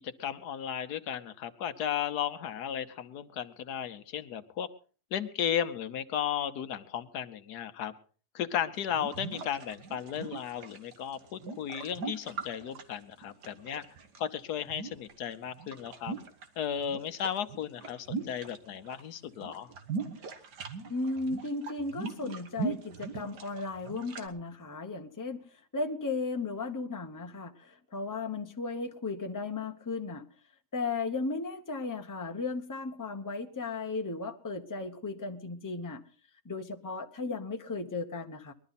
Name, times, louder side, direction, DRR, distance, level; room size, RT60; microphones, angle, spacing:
voice 1, 0.2-4.7 5.1-7.9 8.3-13.8 14.2-16.2 16.6-19.7, left 9 dB, 75° left, 11 dB, 1.4 m, -35 dB
sound 1, 8.8-14.2 14.7-16.5 16.8-19.0 19.3-24.3, right 4 dB, 90° right, 1.9 m, -40 dB
voice 2, 20.9-25.5 25.7-30.2 30.7-36.0 36.4-38.5, left 3 dB, 15° left, 4 dB, 0.9 m, -35 dB
21.0 x 12.0 x 4.1 m, 0.40 s
omnidirectional pair, 1.7 m